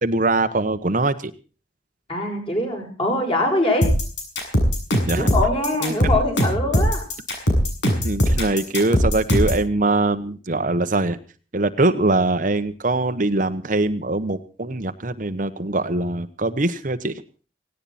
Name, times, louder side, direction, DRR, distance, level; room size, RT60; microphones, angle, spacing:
voice 1, 0.0-1.3 5.1-5.3 5.8-6.1 8.0-11.2 11.5-17.2, right 2 dB, 45° right, 9 dB, 1.1 m, -22 dB
voice 2, 2.1-3.9 5.1-7.0, left 1 dB, 30° left, 2 dB, 6.9 m, -23 dB
sound 1, 3.8-9.6, equal, 85° left, 7.3 m, -20 dB
17.5 x 17.5 x 4.2 m, 0.37 s
head